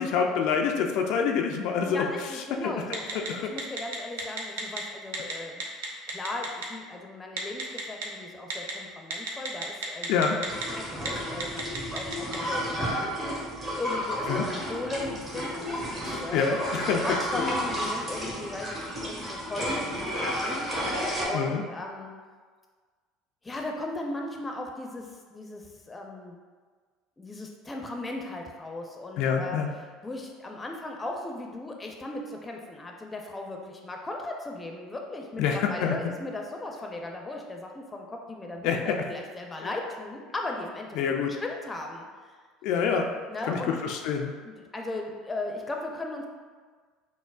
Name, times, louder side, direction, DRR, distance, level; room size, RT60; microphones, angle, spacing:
voice 1, 0.0-2.0 2.6-2.7 3.3-3.4 10.1-10.4 14.3-14.4 16.3-17.0 17.3-17.4 21.3-21.6 29.2-29.7 35.4-35.9 38.6-39.0 39.6-39.7 41.0-41.3 42.6-43.1 43.5-44.3, left 6 dB, 60° left, 2 dB, 0.3 m, -26 dB
voice 2, 1.9-5.6 6.1-11.6 11.9-12.7 13.7-16.5 17.0-22.1 23.4-26.4 27.2-29.6 30.0-41.0 41.2-42.4 43.3-43.8 44.4-46.3, left 2 dB, 20° left, 1 dB, 0.6 m, -37 dB
Telephone, 2.9-3.3 3.6-4.8 5.1-5.3 5.6-6.7 7.4-8.0 8.5-8.7 9.1-10.7 11.0-11.1 11.4-12.4, right 4 dB, 75° right, 0.5 m, -32 dB
sound 1, 10.5-21.3, equal, 30° right, 1.2 m, -32 dB
5.8 x 2.1 x 2.3 m, 1.5 s
hypercardioid pair, 65°, 0 cm